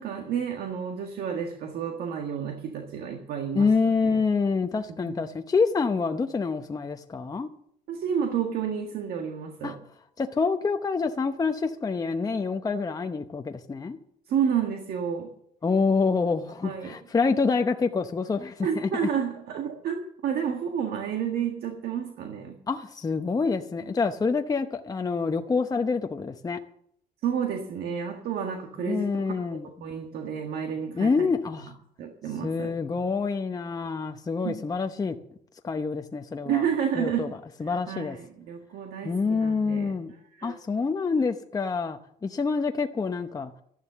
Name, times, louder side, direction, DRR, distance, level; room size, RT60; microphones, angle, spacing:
voice 1, 0.0-3.7 4.0-4.2 5.0-5.2 7.9-9.8 14.3-15.3 16.6-17.0 18.6-22.5 27.2-31.3 32.0-32.7 34.4-34.6 36.4-37.3 37.6-39.9 40.3-40.6, right 8 dB, 70° right, 3 dB, 1.7 m, -30 dB
voice 2, 3.5-7.5 9.6-9.8 10.2-14.0 15.6-19.1 22.7-26.6 28.8-29.7 30.9-31.8 32.4-35.2 35.6-36.6 36.9-37.3 37.6-38.2 39.0-40.1 40.4-43.5, left 4 dB, 20° left, 6 dB, 0.8 m, -27 dB
13.0 x 11.0 x 6.8 m, 0.70 s
cardioid pair, 110°, 17 cm